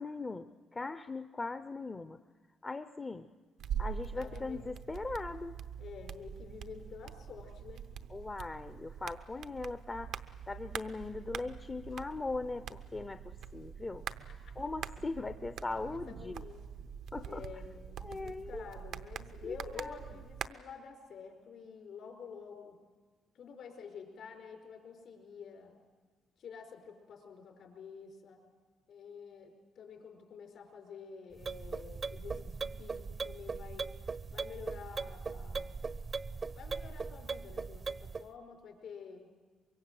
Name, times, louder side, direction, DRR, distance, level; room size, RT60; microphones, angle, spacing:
voice 1, 0.0-2.2 2.6-3.3 3.8-5.6 8.1-10.1 10.5-14.0 14.6-16.4 17.1-17.4 18.0-18.7 19.4-20.0, left 3 dB, 25° left, 10 dB, 0.7 m, -39 dB
sound 1, 3.6-20.5, right 8 dB, 80° right, 0.8 m, -44 dB
voice 2, 4.1-4.7 5.8-7.9 14.3-14.6 15.9-16.6 17.2-22.8 23.3-25.8 26.4-28.4 28.9-33.9 34.3-35.7 36.5-39.3, left 6 dB, 70° left, 3 dB, 4.9 m, -49 dB
sound 2, 31.4-38.3, right 4 dB, 40° right, 0.7 m, -39 dB
24.5 x 22.5 x 7.7 m, 1.4 s
cardioid pair, 90°, 0 cm